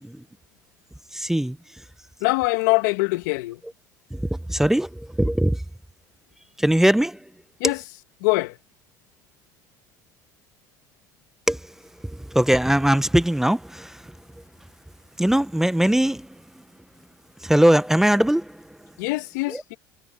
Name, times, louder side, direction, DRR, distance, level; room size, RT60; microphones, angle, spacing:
voice 1, 1.1-1.6 4.1-4.2 4.5-5.6 6.6-7.2 7.6-7.7 11.5-11.6 12.0-14.0 15.2-16.3 17.4-18.6 19.5-19.6, right 1 dB, 5° right, 0.8 m, -20 dB
voice 2, 2.2-3.6 7.6-7.8 8.2-8.6 19.0-19.8, left 25 dB, 80° left, 1.9 m, -23 dB
hypercardioid pair, 75°, 10 cm